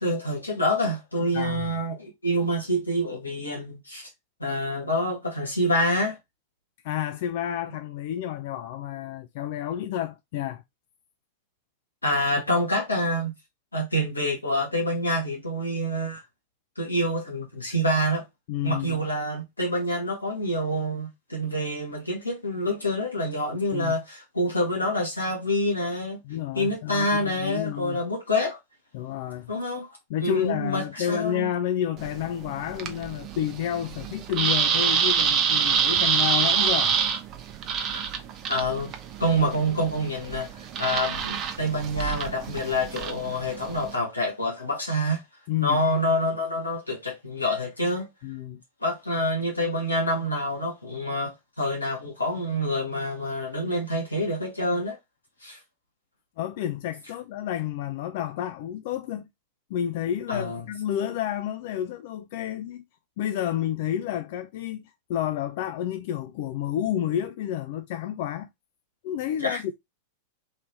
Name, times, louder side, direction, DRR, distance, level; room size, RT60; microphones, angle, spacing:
voice 1, 0.0-4.1 4.4-6.2 12.0-13.3 13.7-16.2 16.8-18.2 18.6-26.2 26.5-28.6 29.5-29.9 30.2-31.5 37.9-38.0 38.5-38.9 39.2-40.5 40.8-45.2 45.6-48.1 48.8-55.0 55.4-55.6 60.3-60.6 69.4-69.6, equal, 80° left, 1.1 m, -27 dB
voice 2, 1.3-1.7 6.8-10.6 18.5-19.0 23.7-23.9 26.2-28.0 28.9-29.5 30.1-37.0 45.5-45.8 48.2-48.6 56.4-59.3 59.7-62.8 63.2-64.8 65.1-68.5 69.0-69.7, left 11 dB, 50° left, 0.3 m, -30 dB
sound 1, 32.0-44.0, right 7 dB, 35° right, 0.6 m, -27 dB
3.2 x 2.8 x 4.2 m
figure-of-eight pair, 90°, 0 cm